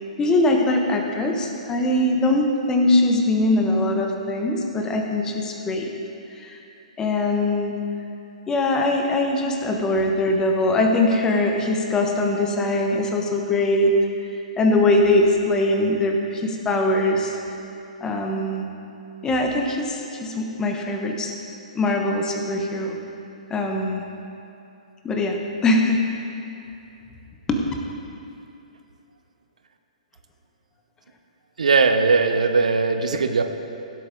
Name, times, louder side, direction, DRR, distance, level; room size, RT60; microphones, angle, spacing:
voice 1, 0.2-5.9 6.4-6.6 7.0-7.8 8.5-13.9 14.3-17.4 18.0-18.6 19.2-21.3 21.7-23.0 23.5-24.0 25.0-26.1 27.5-27.6, left 2 dB, 15° left, 2 dB, 1.1 m, -22 dB
voice 2, 31.6-33.4, right 4 dB, 70° right, 7 dB, 0.7 m, -19 dB
16.5 x 8.1 x 3.7 m, 2.8 s
figure-of-eight pair, 120°, 4 cm